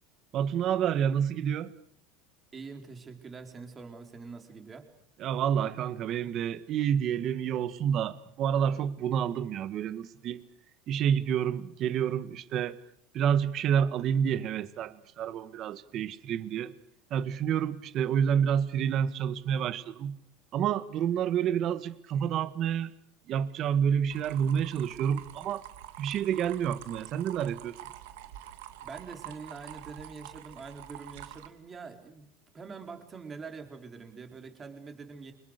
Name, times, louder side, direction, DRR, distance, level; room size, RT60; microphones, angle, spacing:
voice 1, 0.3-1.7 5.2-10.4 10.9-12.8 13.1-16.7 17.1-20.2 20.5-22.9 23.3-25.6 26.0-27.8, right 8 dB, 40° right, 13 dB, 1.7 m, -29 dB
voice 2, 2.5-4.9 28.8-32.3 32.5-35.3, right 4 dB, 20° right, 5 dB, 4.5 m, -44 dB
sound 1, 24.1-31.5, right 13 dB, 90° right, 2.8 m, -47 dB
30.0 x 26.0 x 6.7 m, 0.69 s
supercardioid pair, 145°, 0 cm